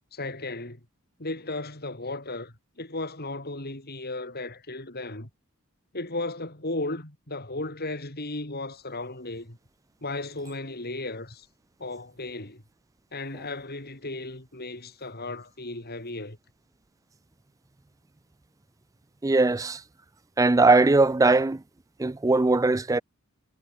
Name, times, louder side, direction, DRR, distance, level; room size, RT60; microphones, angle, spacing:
voice 1, 0.1-0.8 1.2-5.3 5.9-9.6 10.0-11.5 11.8-12.6 13.1-16.4, left 2 dB, 45° left, 5.2 m, -35 dB
voice 2, 19.2-19.8 20.4-21.6 22.0-23.0, right 3 dB, 15° right, 0.4 m, -20 dB
head